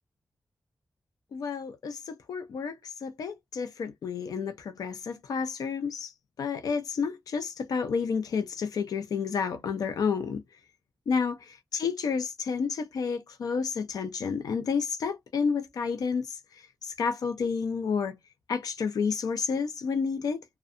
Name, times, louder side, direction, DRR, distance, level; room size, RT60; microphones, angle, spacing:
voice 1, 1.3-6.1 6.4-10.4 11.1-18.2 18.5-20.4, left 5 dB, 85° left, 0.4 m, -30 dB
2.6 x 2.2 x 2.4 m
wide cardioid pair, 130°, 6 cm